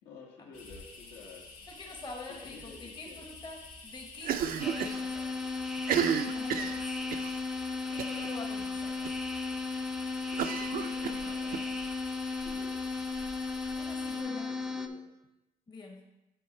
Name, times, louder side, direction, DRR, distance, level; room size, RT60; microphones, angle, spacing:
voice 1, 0.0-1.5 2.3-3.2 10.3-11.7 12.4-12.8 14.0-15.0, left 4 dB, 75° left, -2 dB, 1.9 m, -50 dB
sound 1, 0.5-14.2, left 3 dB, 55° left, 2.3 m, -49 dB
voice 2, 1.7-5.4 6.3-6.8 7.9-9.1 13.8-14.5 15.7-16.0, left 3 dB, 25° left, 2 dB, 1.0 m, -46 dB
Cough, 4.2-5.0 5.3-5.4 5.8-7.3 8.0-8.3 8.6-8.7 9.0-9.1 10.4-11.6, right 8 dB, 60° right, 0.5 m, -32 dB
sound 2, 4.6-14.9, left 4 dB, 5° right, 0.5 m, -35 dB
9.6 x 3.5 x 4.4 m, 0.95 s
cardioid pair, 110°, 17 cm